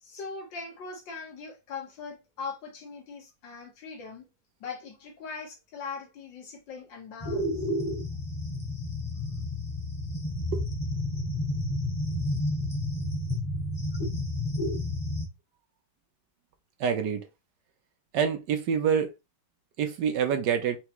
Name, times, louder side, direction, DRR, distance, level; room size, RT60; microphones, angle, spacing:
voice 1, 0.0-4.3 4.6-7.7, left 4 dB, 70° left, 1.8 m, -40 dB
sound 1, 7.2-15.2, left 1 dB, 15° left, 1.0 m, -31 dB
voice 2, 16.8-17.2 18.1-19.1 19.8-20.8, right 7 dB, 70° right, 1.3 m, -26 dB
4.6 x 3.0 x 3.0 m
omnidirectional pair, 2.1 m